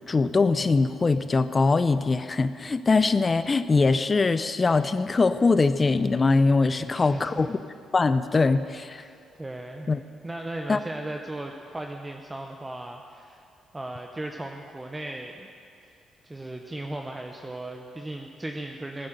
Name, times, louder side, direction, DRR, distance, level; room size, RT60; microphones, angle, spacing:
voice 1, 0.0-7.6 7.9-9.0 9.9-10.0 10.7-10.8, left 3 dB, 30° left, 12 dB, 0.5 m, -22 dB
voice 2, 6.8-7.5 8.9-9.9 10.2-13.4 13.7-15.5 15.9-19.1, right 1 dB, 15° right, 3 dB, 0.8 m, -37 dB
14.5 x 9.4 x 6.7 m, 2.4 s
cardioid pair, 90°, 0 cm